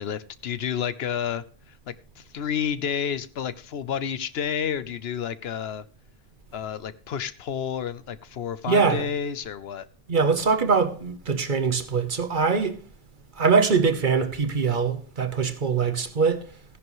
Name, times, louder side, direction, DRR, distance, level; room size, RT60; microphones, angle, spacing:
voice 1, 0.0-1.4 2.2-5.8 6.5-9.8, left 8 dB, 80° left, 1.0 m, -30 dB
voice 2, 8.7-9.1 10.1-12.8 13.4-16.4, right 5 dB, 50° right, 1.2 m, -22 dB
14.5 x 10.5 x 3.1 m
omnidirectional pair, 1.0 m